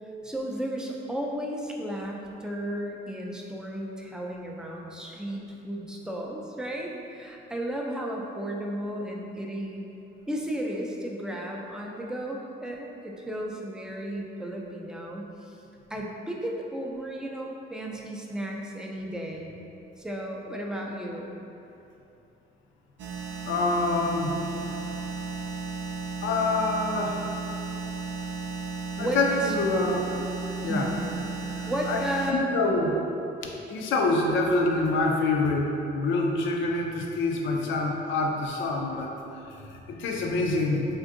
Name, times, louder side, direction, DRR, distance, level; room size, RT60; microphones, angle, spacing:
voice 1, 0.2-9.9 10.3-15.6 15.9-19.6 20.0-21.3 29.0-29.5 30.7-31.0 31.7-32.5, right 1 dB, 5° right, -1 dB, 0.3 m, -34 dB
sound 1, 23.0-32.3, right 4 dB, 65° right, 0.4 m, -34 dB
voice 2, 23.4-24.4 26.2-27.2 29.0-30.1 30.6-30.9 31.6-32.0 32.3-32.9 33.4-39.1 39.5-40.9, left 2 dB, 75° left, 1 dB, 0.4 m, -26 dB
3.6 x 2.5 x 2.5 m, 2.8 s
cardioid pair, 90°, 20 cm